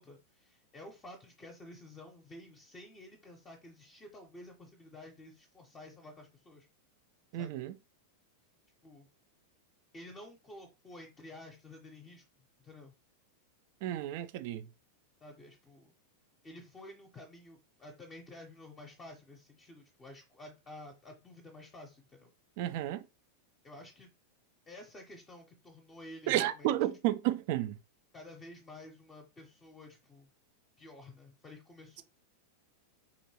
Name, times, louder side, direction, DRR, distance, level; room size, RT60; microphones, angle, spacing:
voice 1, 0.0-6.7 7.3-7.5 8.8-9.1 9.9-12.2 12.6-12.9 15.2-15.9 16.4-22.3 23.6-24.1 24.7-26.8 28.1-30.3 30.8-32.0, left 1 dB, 20° left, 0.7 m, -51 dB
voice 2, 7.3-7.7 13.8-14.7 22.6-23.0 26.3-27.8, right 14 dB, 50° right, 0.3 m, -32 dB
4.0 x 2.9 x 2.8 m
figure-of-eight pair, 90°, 0 cm